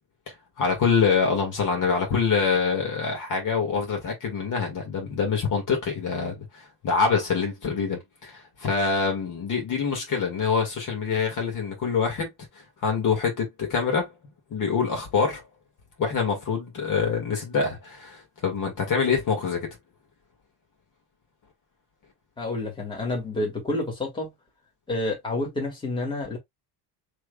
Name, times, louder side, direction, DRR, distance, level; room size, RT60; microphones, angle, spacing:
voice 1, 0.6-14.1 14.5-15.4 16.0-19.8, left 5 dB, 45° left, 2.1 m, -25 dB
voice 2, 22.4-24.3 24.9-26.4, left 2 dB, 10° left, 2.1 m, -29 dB
6.2 x 3.5 x 2.3 m
cardioid pair, 165°, 44 cm